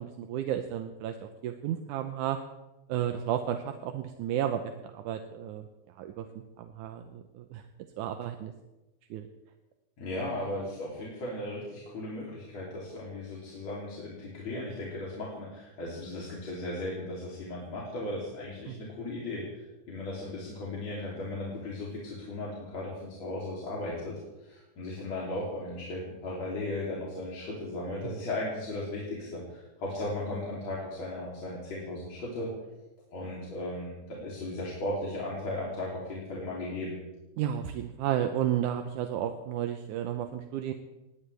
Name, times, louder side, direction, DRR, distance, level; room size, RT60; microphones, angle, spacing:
voice 1, 0.0-2.4 2.9-5.6 6.0-6.3 6.6-7.6 8.0-8.5 9.1-9.3 18.7-18.8 28.0-28.1 37.4-40.7, right 10 dB, 75° right, 6 dB, 2.2 m, -32 dB
voice 2, 10.0-24.1 24.4-32.5 33.1-37.0, left 1 dB, 50° left, -5 dB, 4.2 m, -36 dB
20.0 x 19.0 x 3.4 m, 1.0 s
omnidirectional pair, 3.8 m